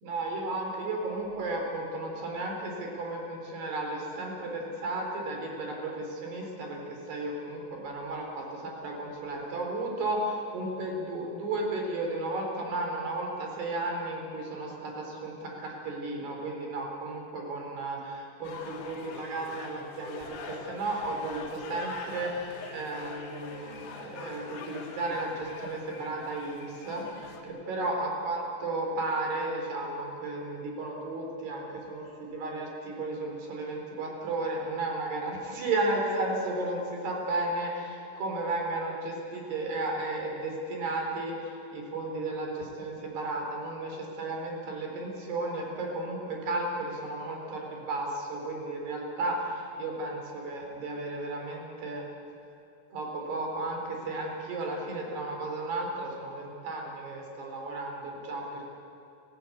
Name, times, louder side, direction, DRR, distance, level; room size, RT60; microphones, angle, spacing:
voice 1, 0.0-52.0 52.9-58.7, right 2 dB, 60° right, 0 dB, 5.9 m, -34 dB
sound 1, 18.4-27.4, left 5 dB, 75° left, 4.3 m, -44 dB
29.5 x 16.0 x 8.4 m, 2.9 s
omnidirectional pair, 5.4 m